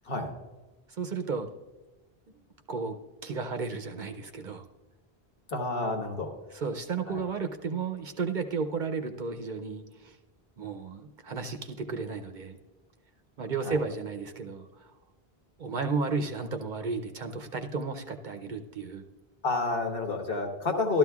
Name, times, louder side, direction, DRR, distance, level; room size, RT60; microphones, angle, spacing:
voice 1, 0.9-1.5 2.3-2.4 2.7-2.9 3.2-4.6 6.5-10.2 10.6-12.6 13.4-14.9 15.6-19.0, right 4 dB, 55° right, 7 dB, 0.7 m, -33 dB
voice 2, 5.5-6.3 7.1-7.2 13.6-13.7 19.4-21.0, left 3 dB, 60° left, 2 dB, 1.4 m, -29 dB
13.0 x 12.5 x 2.3 m, 1.2 s
omnidirectional pair, 1.1 m